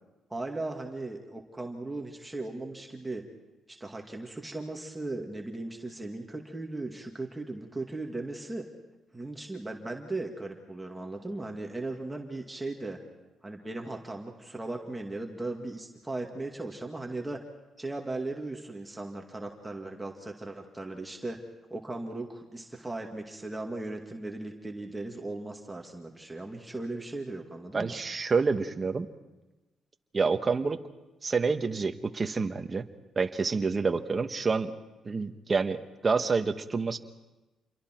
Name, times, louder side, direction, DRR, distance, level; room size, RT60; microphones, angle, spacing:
voice 1, 0.3-3.2 3.7-8.7 9.1-13.0 13.4-17.4 17.8-21.4 21.7-28.0 33.8-33.9, right 2 dB, 15° right, 1 dB, 2.1 m, -37 dB
voice 2, 27.7-29.1 30.1-30.8 31.2-32.8 33.1-34.7 35.0-37.0, right 4 dB, 30° right, 8 dB, 1.3 m, -28 dB
28.5 x 23.0 x 4.5 m, 1.1 s
cardioid pair, 90°, 0 cm